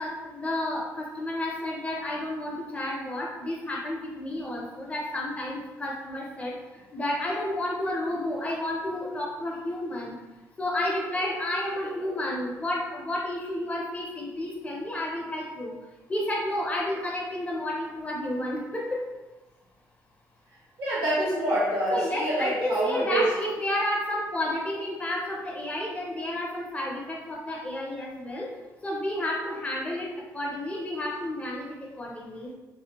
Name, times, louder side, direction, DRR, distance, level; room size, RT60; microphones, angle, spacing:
voice 1, 0.0-10.1 10.6-15.7 16.1-19.0 21.9-28.5 28.8-32.5, left 1 dB, 20° left, -2 dB, 0.4 m, -31 dB
voice 2, 20.8-23.3, right 1 dB, 75° right, -7 dB, 1.2 m, -26 dB
2.5 x 2.0 x 2.8 m, 1.1 s
cardioid pair, 125°, 6 cm